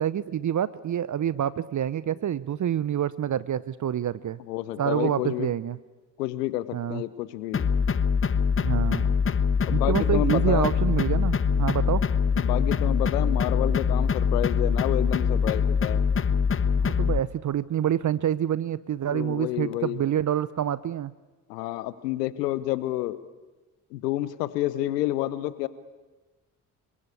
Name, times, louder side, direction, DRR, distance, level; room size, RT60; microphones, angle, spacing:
voice 1, 0.0-4.4 4.8-5.8 6.7-7.0 8.6-9.1 9.7-12.0 16.7-21.1, right 10 dB, 40° right, 18 dB, 0.8 m, -27 dB
voice 2, 4.5-5.5 6.2-7.7 9.7-10.8 12.4-16.0 19.1-20.0 21.5-23.2 23.9-25.7, left 15 dB, 75° left, 16 dB, 1.1 m, -29 dB
sound 1, 7.5-17.2, left 6 dB, 25° left, 1.0 m, -23 dB
27.5 x 23.0 x 8.4 m, 1.2 s
figure-of-eight pair, 45°, 48 cm